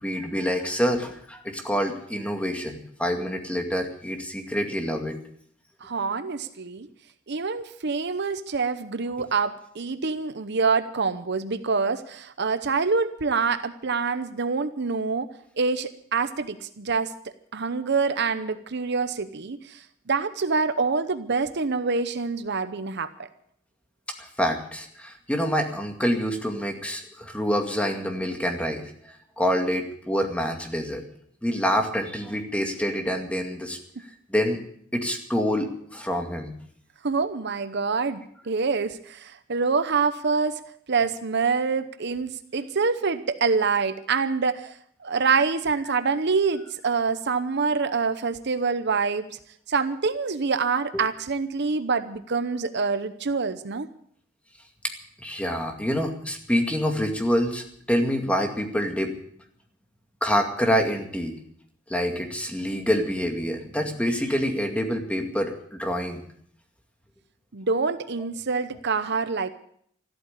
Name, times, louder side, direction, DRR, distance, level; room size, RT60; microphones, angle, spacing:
voice 1, 0.0-5.1 24.2-28.8 29.4-31.0 31.4-33.8 34.3-34.6 34.9-36.5 50.9-51.0 55.2-59.1 60.2-61.3 61.9-66.2, equal, 5° left, 4 dB, 2.2 m, -26 dB
voice 2, 5.8-6.9 7.3-15.3 15.6-17.1 17.5-23.3 37.0-40.6 40.9-49.3 49.7-53.9 67.5-69.5, right 4 dB, 60° right, 11 dB, 0.8 m, -26 dB
14.0 x 12.5 x 8.2 m, 0.65 s
head